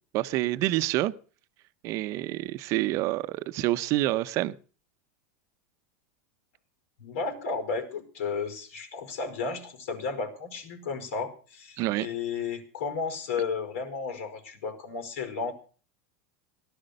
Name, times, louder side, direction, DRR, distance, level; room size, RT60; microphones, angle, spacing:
voice 1, 0.1-1.1 1.8-4.5 11.8-12.1, right 17 dB, 45° right, 0.9 m, -27 dB
voice 2, 7.0-15.5, left 5 dB, 80° left, 5.1 m, -33 dB
17.5 x 12.0 x 6.6 m
supercardioid pair, 145°, 7 cm